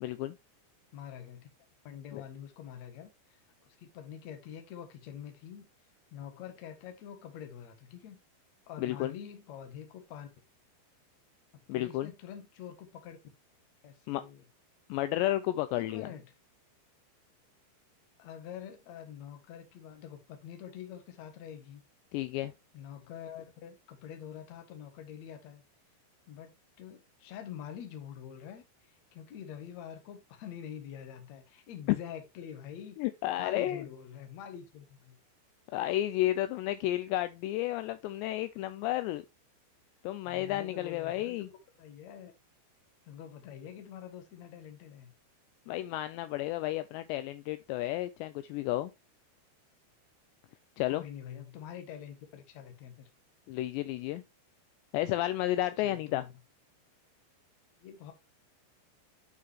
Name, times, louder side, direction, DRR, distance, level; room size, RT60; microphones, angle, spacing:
voice 1, 0.0-0.4 2.1-2.2 8.8-9.1 11.7-12.1 14.1-14.2 14.9-16.1 22.1-22.5 31.9-32.0 33.0-33.9 35.7-39.2 40.0-41.5 45.7-48.9 50.8-51.0 53.5-54.2 54.9-56.2, left 15 dB, 80° left, 2.6 m, -32 dB
voice 2, 0.9-1.5 1.8-3.4 3.7-5.7 6.1-8.2 8.7-10.3 11.7-13.2 13.8-14.4 15.8-16.2 18.2-21.8 22.7-25.6 26.3-28.6 29.1-33.0 33.4-35.2 40.2-41.5 41.8-42.4 43.0-45.1 50.9-53.1 55.8-56.3 57.8-58.1, left 9 dB, 55° left, 2.0 m, -46 dB
8.8 x 6.5 x 2.9 m
omnidirectional pair, 5.4 m